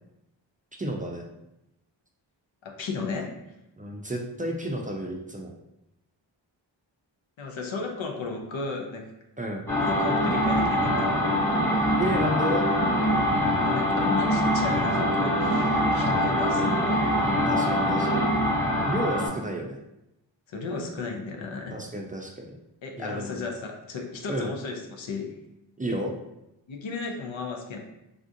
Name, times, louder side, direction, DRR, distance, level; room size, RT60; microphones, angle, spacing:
voice 1, 0.8-1.3 3.8-5.5 9.4-9.6 12.0-12.7 17.2-18.3 18.8-19.8 21.7-22.5 23.0-23.5 24.3-24.5 25.8-26.1, right 1 dB, 20° right, 1 dB, 0.4 m, -31 dB
voice 2, 2.6-3.3 7.4-9.1 9.8-11.3 13.6-17.2 20.5-21.8 22.8-25.3 26.7-27.8, left 4 dB, 75° left, 2 dB, 0.7 m, -34 dB
sound 1, 9.7-19.3, equal, 5° left, 1.0 m, -24 dB
3.5 x 2.4 x 2.6 m, 0.89 s
cardioid pair, 40°, 47 cm